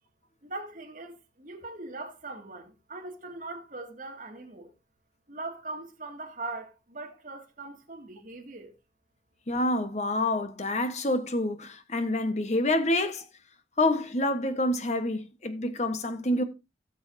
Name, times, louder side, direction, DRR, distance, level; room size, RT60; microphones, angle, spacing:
voice 1, 0.4-4.7 5.3-8.7, right 2 dB, 45° right, 2.1 m, -40 dB
voice 2, 9.5-13.3 13.8-16.4, left 1 dB, 40° left, 1.1 m, -27 dB
17.0 x 6.8 x 2.7 m
head